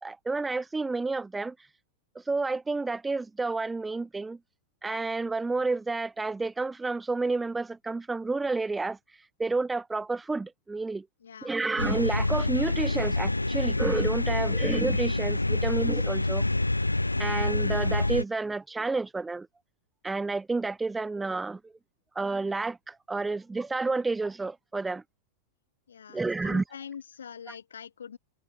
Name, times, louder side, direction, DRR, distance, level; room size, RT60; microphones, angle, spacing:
voice 1, 0.0-1.6 2.3-4.4 4.8-9.0 9.4-11.1 11.4-16.4 17.2-19.5 20.0-21.7 22.2-25.0 26.1-26.6, right 3 dB, 10° right, 0.4 m, -30 dB
voice 2, 11.2-11.5 25.9-28.2, left 7 dB, 70° left, 2.4 m, -44 dB
sound 1, 11.8-18.2, left 2 dB, 85° left, 0.4 m, -27 dB
figure-of-eight pair, 90°, 0 cm